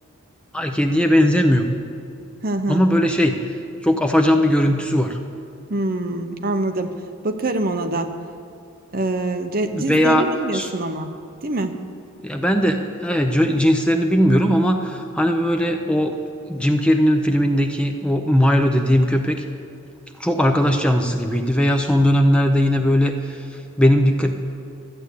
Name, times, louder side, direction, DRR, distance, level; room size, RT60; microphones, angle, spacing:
voice 1, 0.5-1.7 2.7-3.4 3.8-5.2 9.7-10.3 10.5-10.7 12.2-16.1 16.5-19.5 20.2-24.3, equal, 5° left, 4 dB, 0.6 m, -18 dB
voice 2, 2.4-2.8 5.7-6.9 7.2-8.1 8.9-11.1 11.4-11.7, right 2 dB, 45° right, 6 dB, 0.8 m, -24 dB
13.5 x 8.1 x 8.3 m, 2.5 s
head